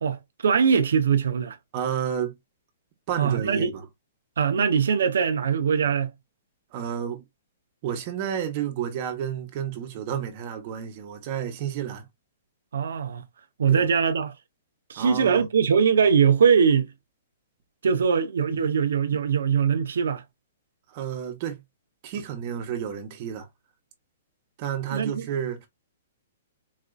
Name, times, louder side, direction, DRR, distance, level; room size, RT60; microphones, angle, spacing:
voice 1, 0.0-1.6 3.2-3.7 4.4-6.1 12.7-13.2 13.6-14.3 14.9-16.9 17.8-20.2 24.9-25.3, right 6 dB, 90° right, 0.5 m, -22 dB
voice 2, 1.7-2.3 3.1-3.9 6.7-7.2 7.8-12.1 13.7-13.8 15.0-15.5 20.9-21.6 22.0-23.5 24.6-25.7, right 9 dB, 30° right, 0.9 m, -31 dB
4.1 x 2.5 x 2.2 m
hypercardioid pair, 170°, 0 cm